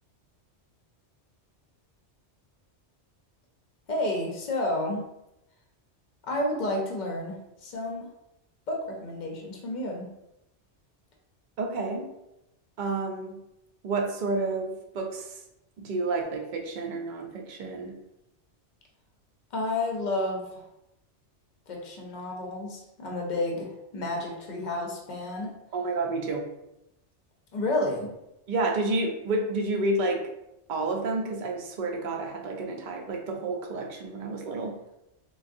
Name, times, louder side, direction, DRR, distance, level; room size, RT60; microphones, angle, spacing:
voice 1, 3.9-5.0 6.3-8.1 8.7-10.1 19.5-20.6 21.7-25.5 27.5-28.1, left 1 dB, 50° left, 0 dB, 0.7 m, -31 dB
voice 2, 11.6-12.1 12.8-13.4 13.8-15.4 15.8-18.0 25.7-26.4 28.5-30.2 30.7-34.8, right 2 dB, 55° right, 2 dB, 0.5 m, -30 dB
3.5 x 2.3 x 2.5 m, 0.87 s
omnidirectional pair, 1.2 m